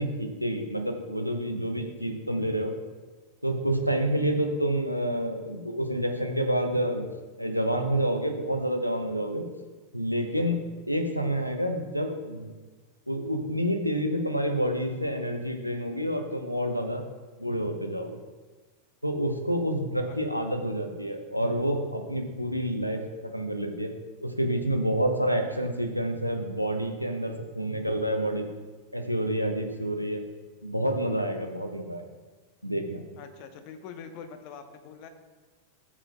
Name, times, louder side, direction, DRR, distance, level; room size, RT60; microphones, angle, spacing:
voice 1, 0.0-2.7 3.4-7.1 7.4-9.5 9.9-12.5 13.1-17.0 17.4-18.2 19.0-23.9 24.2-28.4 28.9-30.2 30.6-32.0 32.6-33.1, equal, 90° left, 5 dB, 0.8 m, -28 dB
voice 2, 33.2-35.1, left 6 dB, 45° left, 7 dB, 0.8 m, -44 dB
14.0 x 7.5 x 2.2 m, 1.3 s
figure-of-eight pair, 90°, 0 cm